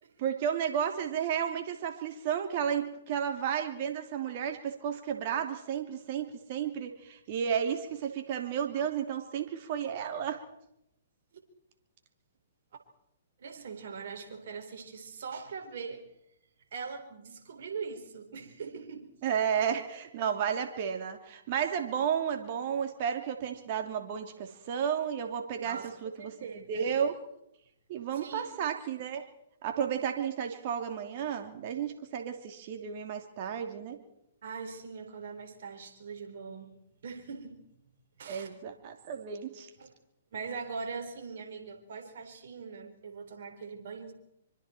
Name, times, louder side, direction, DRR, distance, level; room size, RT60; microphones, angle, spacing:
voice 1, 0.2-10.4 19.2-27.2 27.9-29.2 29.6-34.0 38.3-39.7, right 8 dB, 45° right, 6 dB, 2.9 m, -32 dB
voice 2, 13.4-16.0 16.7-19.1 25.6-26.9 28.1-28.7 34.4-36.7 37.0-37.6 38.2-38.5 39.8-39.9 40.3-44.1, right 5 dB, 60° right, 5 dB, 4.3 m, -41 dB
25.0 x 25.0 x 4.5 m, 0.81 s
hypercardioid pair, 125°, 0 cm